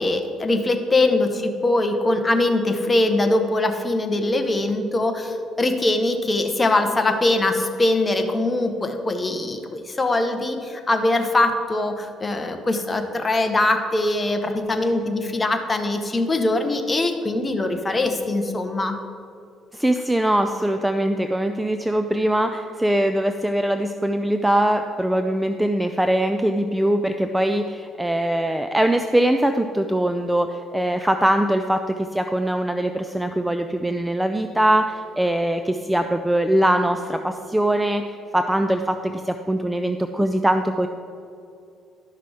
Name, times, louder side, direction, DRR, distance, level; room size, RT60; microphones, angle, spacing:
voice 1, 0.0-19.0, left 2 dB, 20° left, 5 dB, 0.9 m, -22 dB
voice 2, 19.7-38.0 38.3-40.9, right 1 dB, 5° right, 7 dB, 0.3 m, -22 dB
12.0 x 5.9 x 4.8 m, 2.6 s
cardioid pair, 130°, 0 cm